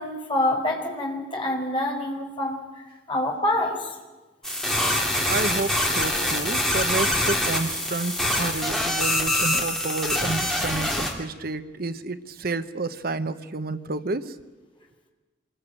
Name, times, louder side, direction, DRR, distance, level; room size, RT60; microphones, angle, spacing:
voice 1, 0.0-2.6 3.1-3.9, left 1 dB, 25° left, 0 dB, 4.5 m, -26 dB
sound 1, 4.4-11.1, left 1 dB, 5° left, 3.0 m, -25 dB
voice 2, 5.2-14.3, right 3 dB, 50° right, 11 dB, 0.9 m, -30 dB
26.0 x 21.0 x 9.0 m, 1.2 s
head